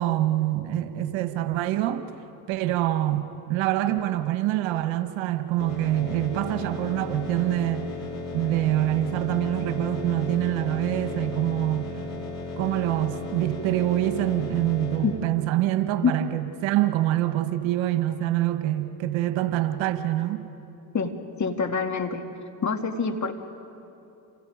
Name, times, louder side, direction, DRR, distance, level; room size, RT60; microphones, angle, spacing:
voice 1, 0.0-2.0 2.5-7.9 8.3-11.9 12.6-20.4, right 14 dB, 65° right, 9 dB, 1.6 m, -25 dB
sound 1, 5.6-15.0, left 3 dB, 85° left, 6.9 m, -35 dB
voice 2, 20.9-22.3 22.6-23.3, left 5 dB, 35° left, 5 dB, 2.4 m, -26 dB
29.5 x 26.5 x 5.2 m, 2.8 s
hypercardioid pair, 75°, 49 cm